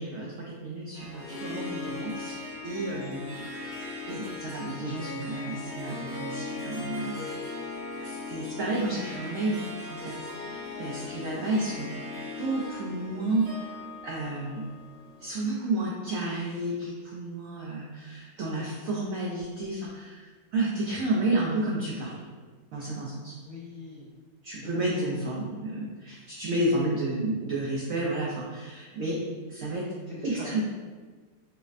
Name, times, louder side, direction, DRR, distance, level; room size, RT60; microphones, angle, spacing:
voice 1, 0.0-3.4 4.0-7.6 8.0-11.9 12.3-13.7 14.0-14.6 15.2-22.2 22.7-23.4 24.4-29.2 29.5-29.9 30.2-30.6, right 2 dB, 80° right, -4 dB, 0.7 m, -31 dB
Harp, 0.9-15.4, left 3 dB, 50° right, 0.8 m, -38 dB
voice 2, 23.4-24.1 24.6-25.0 30.1-30.6, left 3 dB, 30° left, -11 dB, 0.9 m, -43 dB
4.8 x 2.1 x 2.4 m, 1.4 s
omnidirectional pair, 2.0 m